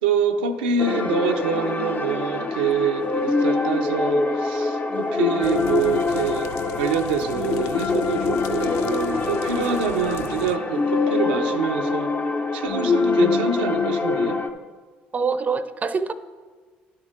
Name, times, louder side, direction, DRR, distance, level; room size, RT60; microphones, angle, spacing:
voice 1, 0.0-12.1 12.5-14.4, right 6 dB, 90° right, 5 dB, 0.5 m, -26 dB
sound 1, 0.8-14.5, left 3 dB, 30° left, 0.8 m, -24 dB
sound 2, 5.4-10.6, left 12 dB, 75° left, 0.3 m, -39 dB
voice 2, 15.1-16.1, right 5 dB, 35° right, 13 dB, 0.6 m, -24 dB
10.5 x 4.4 x 6.3 m, 1.5 s
hypercardioid pair, 60°, 5 cm